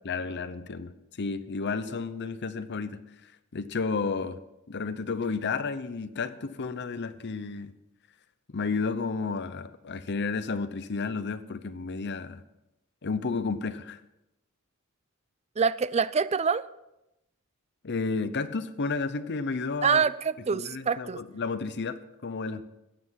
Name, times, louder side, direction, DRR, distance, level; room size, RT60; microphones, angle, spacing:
voice 1, 0.0-0.9 1.2-4.4 4.7-7.7 8.5-12.4 13.0-14.0 17.8-20.0 20.5-22.6, left 4 dB, 55° left, 13 dB, 0.7 m, -32 dB
voice 2, 15.6-16.7 19.8-21.2, right 6 dB, 30° right, 17 dB, 0.4 m, -25 dB
14.5 x 9.5 x 5.8 m, 0.90 s
head